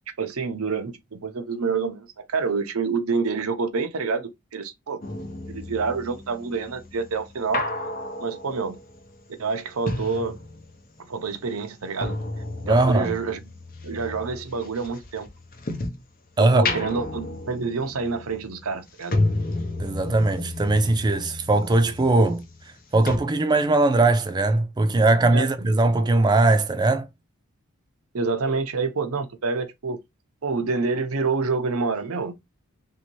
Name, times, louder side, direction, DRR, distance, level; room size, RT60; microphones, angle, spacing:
voice 1, 0.2-5.0 5.5-7.6 8.2-8.8 9.4-10.4 11.0-12.2 12.7-13.4 13.8-15.3 16.4-19.2 25.3-25.7 28.1-30.0 30.4-32.4, right 4 dB, 85° right, 0.7 m, -27 dB
sound 1, 5.0-11.0 11.3-16.1 16.5-22.8 23.1-23.2, left 2 dB, 40° left, 0.7 m, -32 dB
voice 2, 12.6-13.1 16.4-16.6 19.8-22.4 22.9-27.1, right 2 dB, 20° right, 0.3 m, -20 dB
3.1 x 2.8 x 2.9 m
head